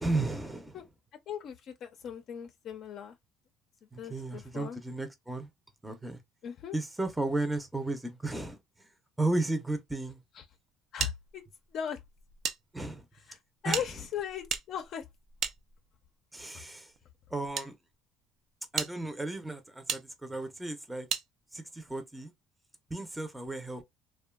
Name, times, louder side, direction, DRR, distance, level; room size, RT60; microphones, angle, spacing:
voice 1, 0.0-0.8 3.9-5.5 5.8-6.2 6.7-8.6 9.2-10.2 12.7-13.0 13.6-13.8 16.3-16.9 17.3-17.8 18.7-21.1 21.5-22.3 22.9-23.8, right 2 dB, 10° right, 0.6 m, -34 dB
voice 2, 1.3-3.2 4.0-4.8 6.4-6.8 10.3-10.4 10.9-11.4 11.7-12.0 13.3-15.1 16.5-16.6, left 9 dB, 60° left, 0.4 m, -38 dB
sound 1, 11.0-12.6 12.9-13.0 13.7-16.1 16.9-17.7 18.2-18.3 18.7-18.9 19.9-20.0 21.1-21.3, right 7 dB, 60° right, 0.4 m, -35 dB
2.6 x 2.2 x 2.3 m
supercardioid pair, 85°, 0 cm